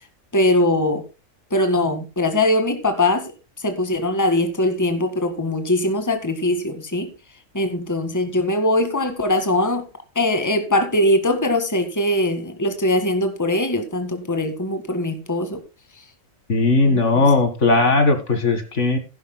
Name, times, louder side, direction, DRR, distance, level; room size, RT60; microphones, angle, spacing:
voice 1, 0.3-1.0 1.5-3.3 3.6-7.1 7.5-9.8 10.2-15.6 16.8-17.3, left 1 dB, 15° left, 7 dB, 1.8 m, -21 dB
voice 2, 16.5-19.0, left 3 dB, 65° left, 7 dB, 2.2 m, -17 dB
16.5 x 11.0 x 2.2 m, 0.30 s
omnidirectional pair, 1.4 m